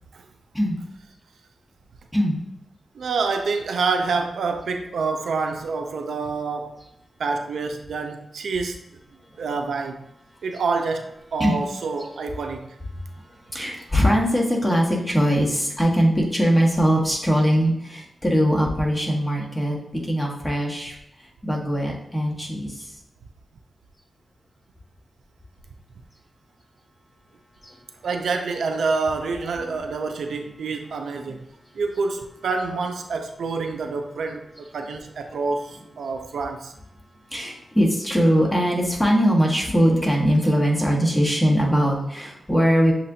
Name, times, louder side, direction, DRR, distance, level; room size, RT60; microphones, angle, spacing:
voice 1, 2.9-6.8 7.2-8.8 9.4-10.1 10.4-12.8 28.0-31.5 31.7-36.7, right 4 dB, 85° right, 0.4 m, -27 dB
voice 2, 13.5-21.0 21.4-22.8 27.6-27.7 37.3-42.9, equal, 10° left, 1.5 m, -21 dB
7.2 x 2.6 x 2.7 m
cardioid pair, 50°, 0 cm